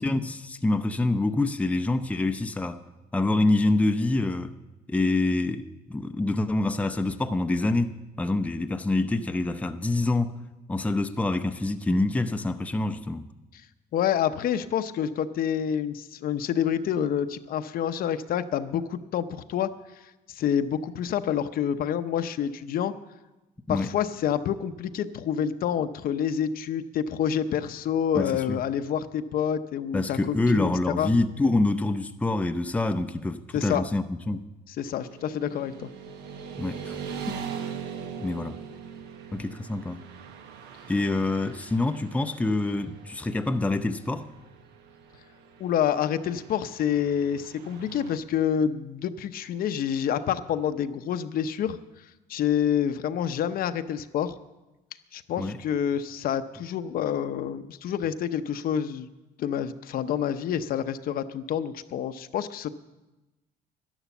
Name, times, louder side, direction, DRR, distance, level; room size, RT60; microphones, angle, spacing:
voice 1, 0.0-2.8 3.1-4.5 4.9-10.3 10.7-13.3 23.7-24.0 28.1-28.6 29.9-34.5 36.6-37.3 38.2-38.6 39.3-40.0 40.9-44.3 55.4-55.6, left 2 dB, 10° left, 0.6 m, -26 dB
voice 2, 13.9-19.7 20.3-22.9 23.7-31.1 33.5-33.8 34.8-35.9 45.6-51.8 52.3-54.4 55.1-59.1 59.4-62.7, left 9 dB, 60° left, 0.7 m, -28 dB
Motorcycle / Traffic noise roadway noise, 35.1-48.2, right 7 dB, 85° right, 1.2 m, -41 dB
11.5 x 11.0 x 7.1 m
cardioid pair, 110°, 17 cm